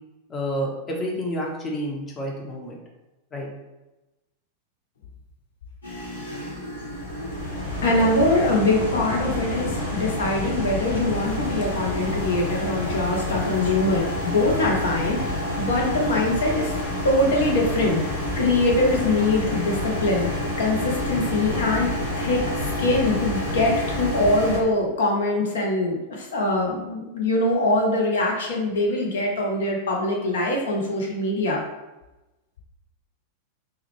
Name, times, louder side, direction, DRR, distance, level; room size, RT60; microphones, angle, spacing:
voice 1, 0.3-2.8 3.3-3.5, equal, 20° left, -1 dB, 0.6 m, -29 dB
sound 1, 5.8-24.6, left 1 dB, 80° left, 1.0 m, -28 dB
voice 2, 7.8-16.8 17.0-31.6, left 2 dB, 60° left, -1 dB, 0.6 m, -23 dB
3.5 x 2.1 x 3.1 m, 1.0 s
figure-of-eight pair, 90°, 0 cm